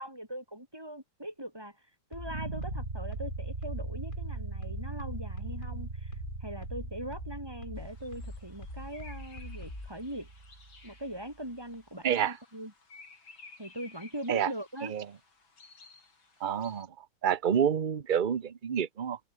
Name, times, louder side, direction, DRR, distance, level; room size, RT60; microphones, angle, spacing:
voice 1, 0.0-1.8 2.1-6.1 6.4-10.3 10.8-12.7 13.6-14.9, right 1 dB, 10° right, 5.2 m, -41 dB
sound 1, 2.1-10.0, left 2 dB, 25° left, 2.7 m, -43 dB
sound 2, 2.2-11.2, right 3 dB, 30° right, 2.9 m, -40 dB
sound 3, 7.8-16.8, left 4 dB, 70° left, 5.2 m, -56 dB
voice 2, 12.0-12.4 14.3-14.5 14.8-15.1 16.4-19.2, right 8 dB, 45° right, 0.6 m, -28 dB
omnidirectional pair, 2.2 m